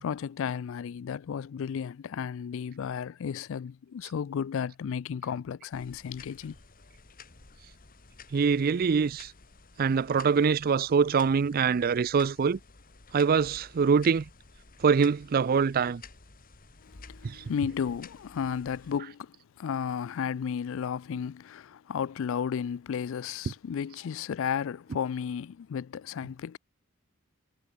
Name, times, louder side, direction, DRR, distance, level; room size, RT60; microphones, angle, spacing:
voice 1, 0.0-6.6 16.8-26.6, left 7 dB, 65° left, 0.4 m, -33 dB
sound 1, 5.7-19.0, left 4 dB, 45° left, 2.0 m, -53 dB
voice 2, 8.3-9.3 9.8-12.6 13.1-14.3 14.8-16.0 17.2-17.7, right 5 dB, 45° right, 0.4 m, -24 dB
head